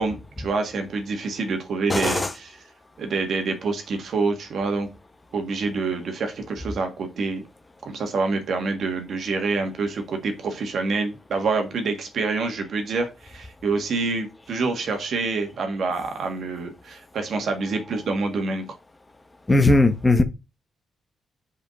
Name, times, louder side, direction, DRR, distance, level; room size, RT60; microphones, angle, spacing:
voice 1, 0.0-2.6 3.0-4.9 5.3-7.4 7.8-18.7, right 4 dB, 70° right, 2.0 m, -27 dB
voice 2, 1.9-2.3 19.5-20.2, left 2 dB, 25° left, 1.3 m, -18 dB
5.1 x 5.1 x 6.4 m
supercardioid pair, 50°, 0 cm